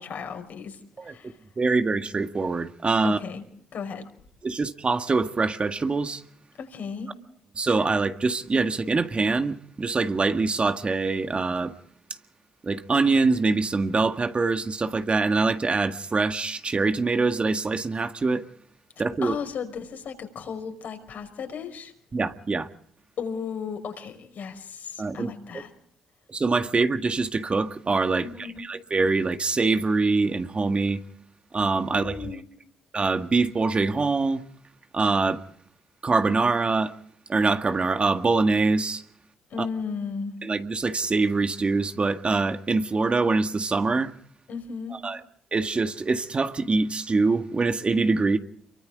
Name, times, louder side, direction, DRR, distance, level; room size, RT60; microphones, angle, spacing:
voice 1, 0.0-1.4 3.0-3.4 3.7-4.1 6.6-7.1 19.2-21.9 23.2-25.7 28.2-28.6 31.9-32.5 39.5-40.4 44.5-45.0, left 6 dB, 60° left, 5.4 m, -35 dB
voice 2, 1.6-3.2 4.4-6.2 7.6-11.7 12.6-18.4 19.0-19.4 22.1-22.7 25.0-25.6 26.3-31.0 31.5-32.4 32.9-34.4 34.9-35.4 36.0-36.9 37.3-39.0 39.6-39.7 40.4-44.1 45.0-45.2 45.5-48.4, right 3 dB, 35° right, 1.8 m, -24 dB
30.0 x 23.5 x 3.7 m
hypercardioid pair, 45°, 3 cm